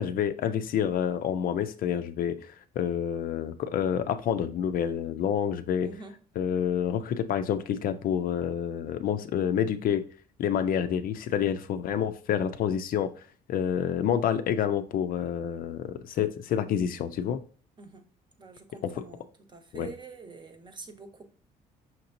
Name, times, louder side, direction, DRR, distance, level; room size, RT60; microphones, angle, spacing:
voice 1, 0.0-5.9 6.4-10.0 10.4-13.1 13.5-17.4 18.8-19.1 19.7-19.9, left 9 dB, 60° left, 10 dB, 0.4 m, -28 dB
voice 2, 18.4-19.2 19.5-21.2, right 4 dB, 25° right, 5 dB, 0.8 m, -46 dB
5.8 x 2.9 x 2.6 m, 0.42 s
cardioid pair, 110°, 17 cm